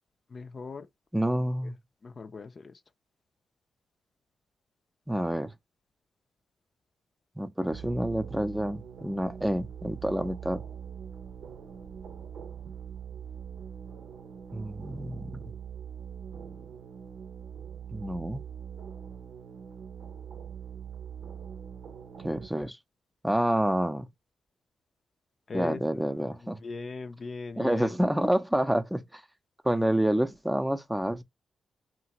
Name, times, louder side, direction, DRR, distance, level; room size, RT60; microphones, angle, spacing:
voice 1, 0.3-0.9 2.0-2.8 25.5-28.0, left 4 dB, 50° left, 0.4 m, -39 dB
voice 2, 1.1-1.7 5.1-5.5 7.4-10.6 14.5-15.4 17.9-18.5 22.2-22.8 23.2-24.1 25.5-26.6 27.6-29.2 29.6-31.2, right 1 dB, 5° right, 0.5 m, -28 dB
sound 1, 7.7-22.5, right 8 dB, 80° right, 0.8 m, -43 dB
2.9 x 2.4 x 2.9 m
supercardioid pair, 55°, 0 cm